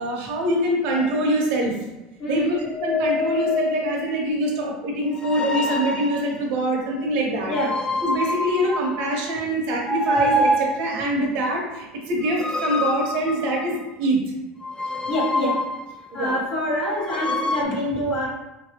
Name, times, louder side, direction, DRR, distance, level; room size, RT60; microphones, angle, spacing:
voice 1, 0.0-1.7 2.3-7.5 8.0-14.2 16.1-16.4, right 1 dB, 65° right, -1 dB, 0.7 m, -24 dB
sound 1, 0.9-1.2 2.6-4.2 5.1-6.3 7.5-9.3 9.8-11.0 12.2-13.8 14.6-16.0 17.0-17.6, left 1 dB, 20° left, 0.3 m, -26 dB
voice 2, 2.2-2.5 7.5-7.8 15.1-15.6 16.1-18.3, equal, 60° left, -4 dB, 0.9 m, -25 dB
3.0 x 2.6 x 2.7 m, 1.0 s
supercardioid pair, 110°, 4 cm